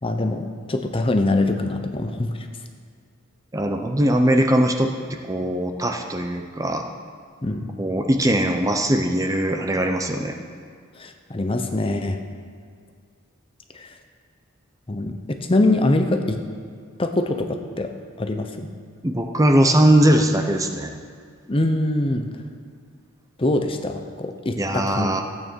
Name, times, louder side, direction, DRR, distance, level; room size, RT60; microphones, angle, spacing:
voice 1, 0.0-2.3 7.4-7.7 10.9-12.2 13.7-13.9 14.9-16.4 17.0-17.9 18.2-18.7 21.5-22.3 23.4-25.1, left 2 dB, 25° left, 6 dB, 0.7 m, -23 dB
voice 2, 3.5-4.9 5.3-6.8 7.8-10.4 19.0-20.9 24.6-25.2, right 1 dB, 15° right, 4 dB, 0.6 m, -20 dB
15.5 x 8.8 x 4.6 m, 2.1 s
head